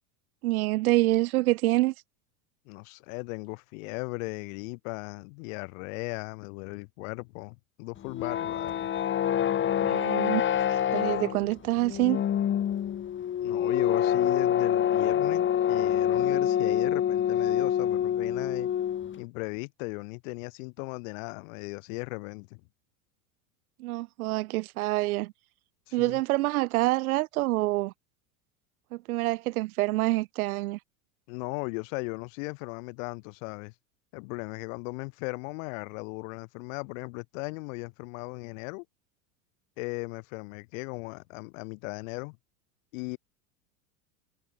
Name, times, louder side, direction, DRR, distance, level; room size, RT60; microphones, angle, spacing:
voice 1, 0.4-1.9 9.8-10.4 10.7-12.2 23.8-25.3 25.9-27.9 28.9-30.8, right 19 dB, 80° right, 0.7 m, -26 dB
voice 2, 2.6-8.9 13.4-18.7 19.2-22.6 25.9-26.2 31.3-33.7 34.1-38.8 39.8-42.4 42.9-43.2, left 30 dB, 65° left, 6.5 m, -37 dB
sound 1, 8.0-19.2, left 10 dB, 25° left, 1.4 m, -26 dB
hypercardioid pair, 105°, 43 cm